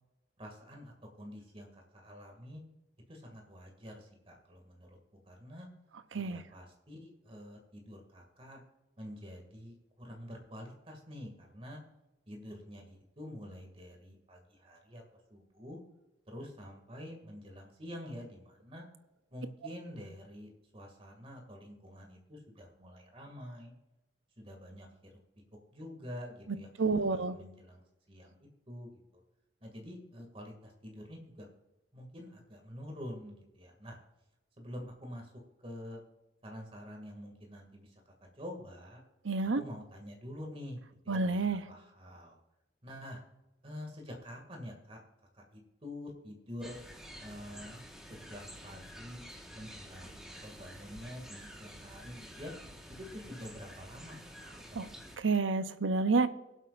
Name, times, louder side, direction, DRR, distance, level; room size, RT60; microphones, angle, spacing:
voice 1, 0.4-2.6 3.1-5.0 5.3-5.7 6.1-8.6 9.0-11.8 12.3-15.0 15.3-15.8 16.3-18.9 19.3-23.7 24.4-24.9 25.7-27.8 28.1-29.0 29.6-31.5 31.9-34.0 34.6-35.3 35.6-36.0 36.4-39.0 39.6-42.4 42.8-43.2 43.6-45.0 45.3-46.8 47.2-47.8 48.1-49.2 49.5-52.5 52.9-54.3 54.7-55.1, equal, 30° right, 2 dB, 2.3 m, -47 dB
voice 2, 26.8-27.4 39.2-39.6 41.1-41.6 54.7-54.9 55.2-56.3, right 3 dB, 85° right, 11 dB, 0.8 m, -29 dB
sound 1, 46.6-55.2, equal, 5° right, 1.4 m, -49 dB
23.0 x 8.1 x 2.5 m, 0.97 s
head